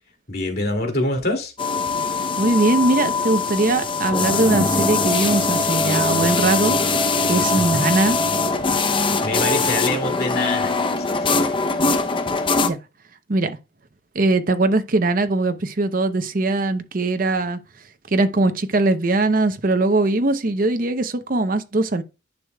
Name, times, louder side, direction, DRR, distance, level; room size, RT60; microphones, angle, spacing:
voice 1, 0.3-1.5 7.6-7.8 9.2-11.3, left 2 dB, 55° left, 2.5 m, -25 dB
sound 1, 1.6-12.7, left 3 dB, 25° left, 0.6 m, -22 dB
voice 2, 2.4-6.8 7.3-8.2 12.6-12.8 13.3-13.6 14.1-17.6 18.1-22.0, right 2 dB, 50° right, 0.7 m, -20 dB
10.5 x 6.4 x 2.3 m
head